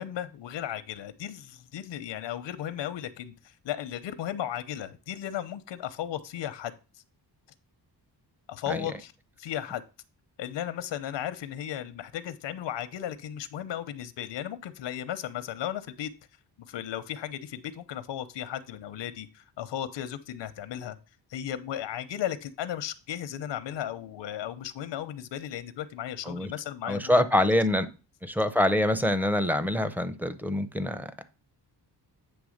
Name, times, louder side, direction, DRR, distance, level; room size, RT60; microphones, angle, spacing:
voice 1, 0.0-6.7 8.5-9.1 9.4-9.8 10.4-16.1 16.7-21.0 21.3-27.1 27.4-27.6, left 11 dB, 90° left, 13 dB, 0.8 m, -35 dB
voice 2, 26.8-27.9 28.2-31.2, left 1 dB, 5° right, 11 dB, 0.5 m, -25 dB
8.8 x 3.3 x 6.4 m, 0.32 s
wide cardioid pair, 150°, 42 cm